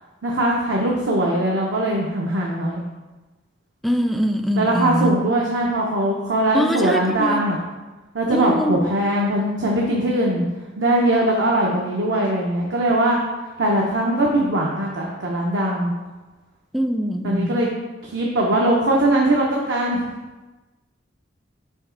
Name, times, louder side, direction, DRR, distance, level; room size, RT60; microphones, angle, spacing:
voice 1, 0.2-2.8 4.6-7.6 8.1-10.5 10.8-13.2 13.6-15.9 17.2-17.7 18.0-20.0, right 1 dB, 70° right, -2 dB, 0.7 m, -21 dB
voice 2, 3.8-5.1 6.5-7.4 8.3-8.9 16.7-17.5, equal, ahead, 5 dB, 0.3 m, -23 dB
5.2 x 5.0 x 3.8 m, 1.2 s
head